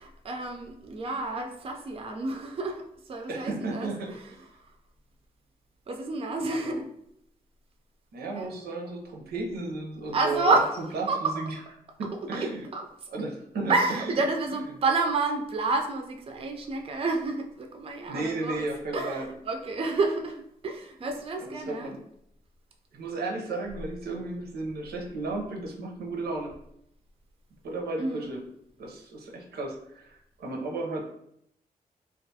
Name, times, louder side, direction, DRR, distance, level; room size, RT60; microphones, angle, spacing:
voice 1, 0.0-4.7 5.9-6.9 8.3-8.5 10.1-11.4 12.0-12.9 13.7-18.7 18.9-21.9 28.0-28.4, right 3 dB, 35° right, 4 dB, 0.4 m, -30 dB
voice 2, 3.3-4.2 6.5-6.8 8.1-10.6 10.9-11.5 12.0-12.6 13.1-13.7 18.1-19.3 21.4-22.0 22.9-26.5 27.6-28.4 28.8-31.0, right 3 dB, 85° right, 0 dB, 0.6 m, -34 dB
2.5 x 2.3 x 2.7 m, 0.73 s
cardioid pair, 65°, 16 cm